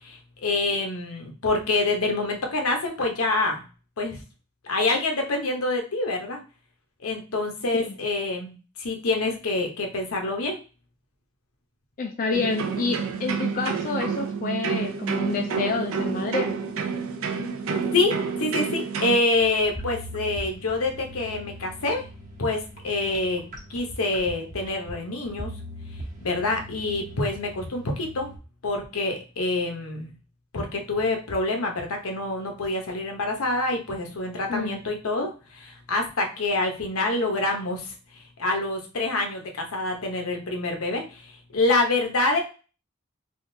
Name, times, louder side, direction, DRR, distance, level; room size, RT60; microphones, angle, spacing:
voice 1, 0.0-3.6 4.0-4.2 4.6-6.4 7.0-10.6 17.9-18.1 18.4-22.0 22.4-23.4 23.7-25.5 26.2-28.3 28.6-30.1 30.5-37.9 38.4-42.4, left 2 dB, 80° left, 3 dB, 0.9 m, -26 dB
voice 2, 12.0-16.5 34.5-34.8, left 4 dB, 40° left, 3 dB, 0.4 m, -28 dB
sound 1, 12.3-19.2, right 5 dB, 70° right, 0.5 m, -29 dB
sound 2, 19.3-28.4, equal, 35° right, 1.1 m, -41 dB
3.5 x 2.4 x 2.6 m, 0.34 s
head